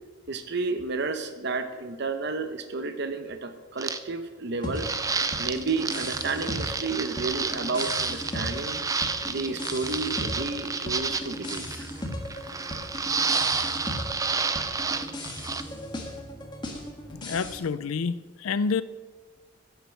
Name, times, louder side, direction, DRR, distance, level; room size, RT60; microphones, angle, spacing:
voice 1, 0.3-4.9 5.4-8.8 9.2-11.9, right 3 dB, 50° right, 8 dB, 0.9 m, -31 dB
sound 1, 3.8-4.0 4.7-15.6, right 4 dB, 15° right, 0.4 m, -30 dB
sound 2, 4.6-17.5, left 1 dB, 20° left, 1.6 m, -37 dB
voice 2, 17.1-18.8, left 5 dB, 75° left, 15 dB, 0.4 m, -28 dB
10.5 x 8.2 x 7.6 m, 1.3 s
head